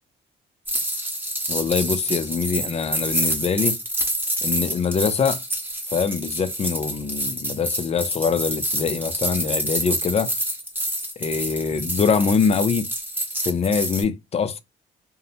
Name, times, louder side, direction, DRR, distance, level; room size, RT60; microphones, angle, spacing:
sound 1, 0.7-14.0, right 1 dB, 10° right, 0.8 m, -27 dB
voice 1, 1.5-3.8 4.4-5.4 5.9-10.3 11.2-12.9 13.4-14.6, left 6 dB, 30° left, 0.4 m, -23 dB
2.7 x 2.0 x 2.6 m
cardioid pair, 90°, 20 cm